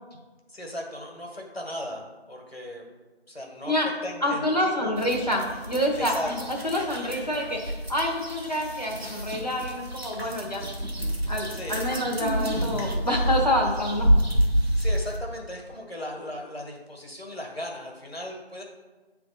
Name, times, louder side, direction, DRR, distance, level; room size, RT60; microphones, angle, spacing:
voice 1, 0.5-2.9 3.3-4.9 5.2-5.5 6.0-6.3 11.5-11.9 14.7-18.6, left 1 dB, 65° left, 0 dB, 1.5 m, -37 dB
voice 2, 4.2-6.1 6.5-10.6 11.3-14.2, left 1 dB, 40° left, -1 dB, 0.9 m, -27 dB
sound 1, 5.0-15.2, equal, 70° right, 1.2 m, -28 dB
7.9 x 3.4 x 4.0 m, 1.2 s
figure-of-eight pair, 180°, 32 cm